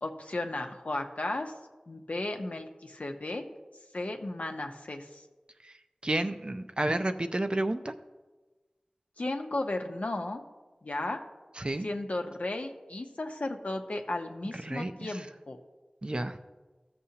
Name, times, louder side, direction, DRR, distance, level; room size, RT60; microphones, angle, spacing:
voice 1, 0.0-1.5 1.9-3.4 3.9-5.2 9.2-10.4 10.8-11.2 11.8-15.6, left 2 dB, 75° left, 4 dB, 0.7 m, -34 dB
voice 2, 6.0-7.9 11.6-11.9 14.6-15.1 16.0-16.4, right 1 dB, 40° right, 8 dB, 0.5 m, -30 dB
14.0 x 6.8 x 2.8 m, 1.2 s
wide cardioid pair, 50°, 2 cm